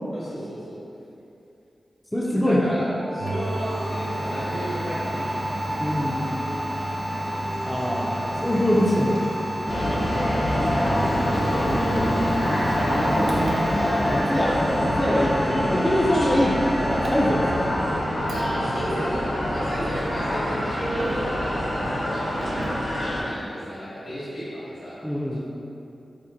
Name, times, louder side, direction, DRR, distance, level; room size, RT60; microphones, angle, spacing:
voice 1, 0.1-0.7 2.2-5.3 8.0-8.5 11.3-11.8 18.3-22.7 23.0-25.0 25.3-25.4, equal, 90° left, -11 dB, 1.4 m, -34 dB
voice 2, 2.1-2.6 5.8-6.3 7.6-9.2 12.8-13.7 13.9-17.9 25.0-25.4, equal, 10° left, -3 dB, 0.4 m, -24 dB
sound 1, 3.0-19.9, left 1 dB, 50° right, 0.7 m, -34 dB
Domestic sounds home sounds, 3.2-21.5 21.8-22.9, right 1 dB, 85° right, 0.4 m, -33 dB
sound 2, 9.7-23.2, equal, 60° left, 0.7 m, -25 dB
4.1 x 2.1 x 2.5 m, 2.7 s
cardioid pair, 60°, 0 cm